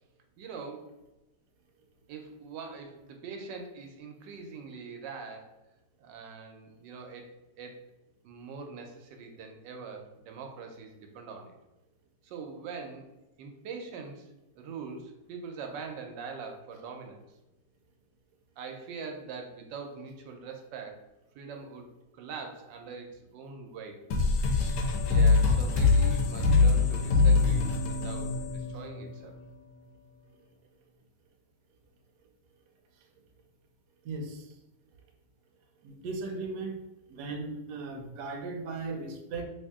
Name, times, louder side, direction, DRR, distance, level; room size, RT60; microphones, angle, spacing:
voice 1, 0.4-0.9 2.1-5.5 6.0-7.3 7.6-7.8 8.2-11.5 12.2-13.1 13.4-14.3 14.6-17.2 18.6-21.0 21.3-24.0 25.1-29.4, right 5 dB, 90° right, 3 dB, 1.3 m, -43 dB
sound 1, 24.1-29.4, left 4 dB, 85° left, 1.3 m, -24 dB
voice 2, 34.0-34.5 35.8-36.8 37.1-39.4, right 3 dB, 70° right, 2 dB, 1.1 m, -37 dB
3.0 x 2.7 x 3.5 m, 0.97 s
omnidirectional pair, 1.9 m